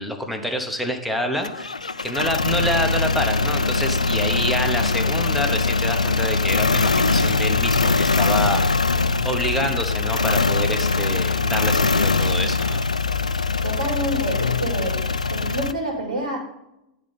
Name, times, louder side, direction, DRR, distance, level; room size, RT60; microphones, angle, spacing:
voice 1, 0.0-1.7 2.0-8.6 9.2-12.8, equal, ahead, 2 dB, 1.1 m, -27 dB
sound 1, 1.4-15.7, left 3 dB, 85° left, 0.3 m, -22 dB
voice 2, 13.6-15.0 15.3-16.4, right 1 dB, 75° right, -1 dB, 2.5 m, -27 dB
10.0 x 4.0 x 5.2 m, 0.87 s
figure-of-eight pair, 95°, 4 cm